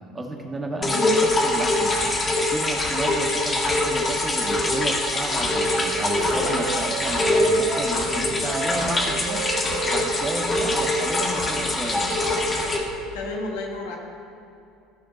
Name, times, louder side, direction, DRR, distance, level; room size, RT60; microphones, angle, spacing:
voice 1, 0.1-2.0 2.4-9.4 9.9-12.1, right 2 dB, 20° right, 2 dB, 1.5 m, -32 dB
sound 1, 0.8-12.8, left 1 dB, 25° left, 1.6 m, -24 dB
sound 2, 1.2-13.0, left 2 dB, 55° left, 1.8 m, -37 dB
Wind instrument woodwind instrument, 4.8-7.9 8.4-11.7, right 7 dB, 70° right, 0.6 m, -35 dB
voice 2, 6.1-6.6 10.2-10.4 13.1-14.0, left 2 dB, 70° left, 0 dB, 1.5 m, -32 dB
14.0 x 5.0 x 5.1 m, 2.7 s
hypercardioid pair, 65°, 0 cm